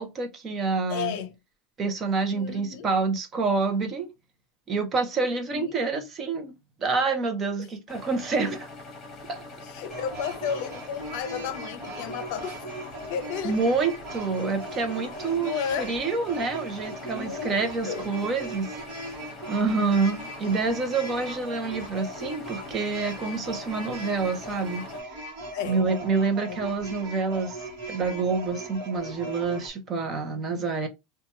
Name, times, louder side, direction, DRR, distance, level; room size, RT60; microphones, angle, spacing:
voice 1, 0.0-1.1 1.8-4.1 4.7-6.5 6.8-8.7 9.3-9.4 13.4-18.8 19.5-24.8 25.1-25.2 25.7-30.9, right 4 dB, 25° right, 0.7 m, -27 dB
voice 2, 0.9-1.3 2.3-2.9 5.2-5.8 9.6-12.6 13.1-13.6 15.2-15.9 17.0-17.6 17.8-18.1 21.1-21.3 25.5-25.9 26.5-26.6, left 8 dB, 60° left, 0.6 m, -33 dB
sound 1, 7.9-25.0, left 3 dB, 25° left, 1.2 m, -44 dB
sound 2, 9.9-29.7, right 1 dB, 50° right, 1.2 m, -39 dB
2.9 x 2.2 x 2.8 m
supercardioid pair, 150°, 0 cm